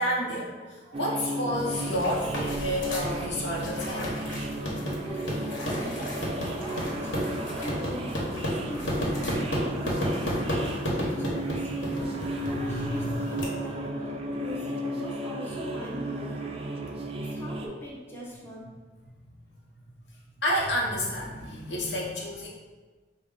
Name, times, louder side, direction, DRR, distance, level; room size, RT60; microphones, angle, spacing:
voice 1, 0.0-4.1 11.9-12.0 12.4-13.5 20.4-22.5, equal, 65° left, -3 dB, 0.8 m, -30 dB
sound 1, 0.9-17.7, right 1 dB, 30° right, 0.3 m, -34 dB
sound 2, 1.5-13.4, equal, 90° left, 1.0 m, -32 dB
voice 2, 5.0-10.2 10.6-16.5 17.1-18.7, equal, 10° left, -6 dB, 0.7 m, -42 dB
4.3 x 2.1 x 3.7 m, 1.3 s
head